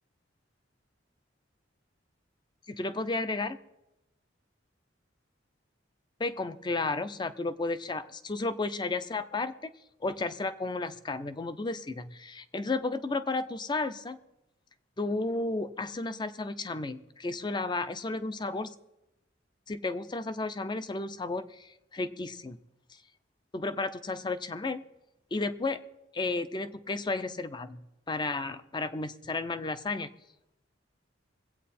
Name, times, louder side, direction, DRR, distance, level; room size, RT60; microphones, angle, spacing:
voice 1, 2.7-3.6 6.2-9.7 10.0-14.2 15.0-18.7 19.7-22.6 23.5-24.8 25.3-25.8 26.1-30.1, left 3 dB, 25° left, 12 dB, 0.5 m, -33 dB
21.5 x 8.3 x 4.2 m, 0.91 s
head